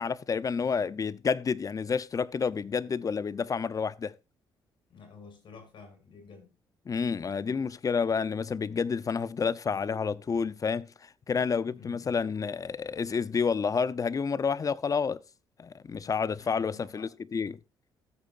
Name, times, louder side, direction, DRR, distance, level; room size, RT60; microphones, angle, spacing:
voice 1, 0.0-4.1 6.9-15.2 15.6-17.6, left 5 dB, 40° left, 0.8 m, -29 dB
voice 2, 4.9-6.5 11.8-12.2 16.3-17.1, left 5 dB, 60° left, 7.1 m, -50 dB
15.5 x 8.5 x 2.6 m
cardioid pair, 80°, 9 cm